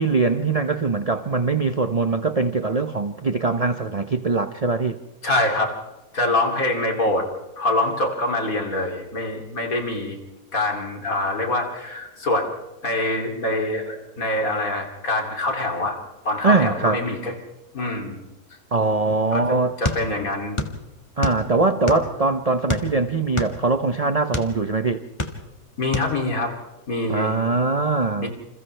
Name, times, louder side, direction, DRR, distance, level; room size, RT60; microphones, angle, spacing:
voice 1, 0.0-5.0 16.4-17.0 18.7-19.7 21.2-25.0 27.1-28.3, right 3 dB, 40° right, 0.5 m, -22 dB
voice 2, 5.2-5.7 6.1-7.3 7.6-10.2 10.5-12.5 12.8-16.0 16.3-17.3 17.7-18.2 19.3-20.6 21.9-22.0 25.8-26.5 26.9-27.3 28.2-28.3, left 2 dB, 55° left, 3.3 m, -24 dB
sound 1, 19.8-20.8 21.0-22.2 22.7-24.6 25.0-25.6 25.9-26.1, left 2 dB, 20° left, 1.6 m, -27 dB
29.0 x 27.5 x 3.3 m
omnidirectional pair, 1.8 m